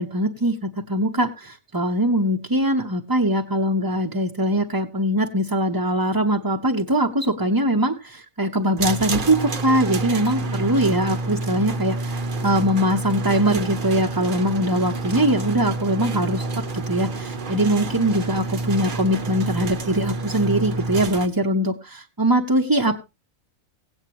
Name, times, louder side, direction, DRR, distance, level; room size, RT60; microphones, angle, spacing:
voice 1, 0.0-23.0, right 1 dB, 20° right, 2 dB, 0.6 m, -22 dB
sound 1, 8.8-21.3, right 3 dB, 45° right, 0.9 m, -28 dB
17.0 x 8.9 x 2.9 m, 0.25 s
omnidirectional pair, 1.4 m